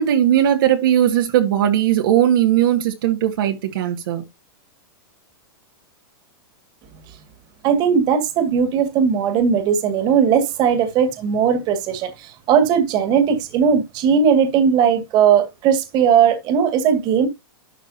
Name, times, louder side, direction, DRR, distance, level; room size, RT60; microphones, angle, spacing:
voice 1, 0.0-4.2, right 11 dB, 70° right, 1.9 m, -18 dB
voice 2, 7.6-17.3, right 7 dB, 35° right, 2.1 m, -18 dB
12.0 x 6.4 x 2.8 m
supercardioid pair, 145°, 12 cm